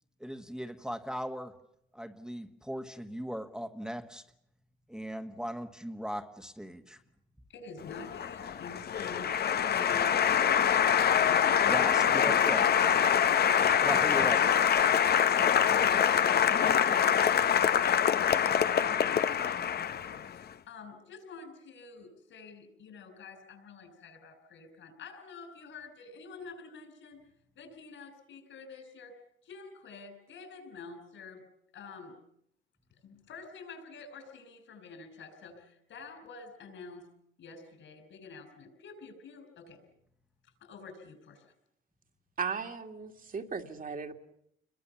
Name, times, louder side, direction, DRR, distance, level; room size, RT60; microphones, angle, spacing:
voice 1, 0.2-1.5 1.9-4.2 4.9-7.0 11.7-12.6 13.8-14.4, equal, 5° right, 5 dB, 1.5 m, -38 dB
voice 2, 7.5-10.2 15.2-15.5 15.9-27.2 27.5-29.1 29.4-31.4 31.7-32.2 33.0-37.1 37.4-39.8 40.4-41.5, left 4 dB, 70° left, 8 dB, 6.6 m, -48 dB
Applause, 7.9-20.3, left 8 dB, 55° left, 1.0 m, -25 dB
voice 3, 42.4-44.1, right 5 dB, 45° right, 5 dB, 2.3 m, -36 dB
27.5 x 22.5 x 7.1 m, 0.73 s
cardioid pair, 90°, 20 cm